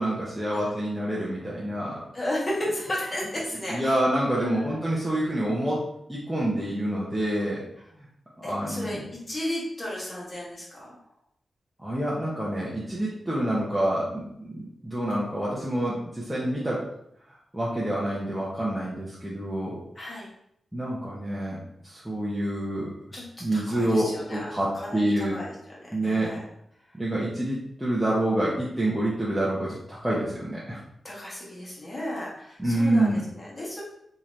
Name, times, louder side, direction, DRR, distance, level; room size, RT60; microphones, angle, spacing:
voice 1, 0.0-2.0 3.7-7.6 8.4-9.0 11.8-16.9 17.5-19.8 20.7-22.9 23.4-25.3 25.9-26.3 26.9-30.8 32.6-33.2, right 1 dB, 5° right, -7 dB, 0.7 m, -27 dB
voice 2, 2.1-4.0 4.3-5.2 8.4-10.9 19.9-20.3 23.1-24.5 24.7-25.8 26.0-26.4 31.0-33.8, left 1 dB, 30° left, -5 dB, 1.2 m, -34 dB
3.7 x 2.8 x 3.1 m, 0.74 s
wide cardioid pair, 160°, 0 cm